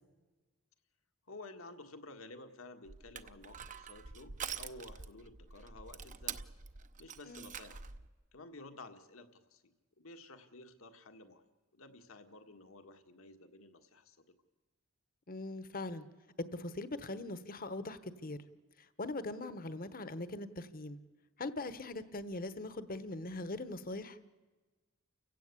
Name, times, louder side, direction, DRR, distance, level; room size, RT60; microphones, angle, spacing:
voice 1, 1.3-6.4 7.0-7.9 8.3-11.4 11.7-14.2, left 2 dB, 75° left, 7 dB, 1.7 m, -53 dB
Crushing, 2.9-8.1, right 7 dB, 35° right, 0.7 m, -46 dB
voice 2, 15.3-16.1 16.5-18.4 19.0-21.0 21.4-24.2, left 2 dB, 45° left, 13 dB, 1.1 m, -41 dB
29.5 x 16.5 x 8.4 m, 1.3 s
head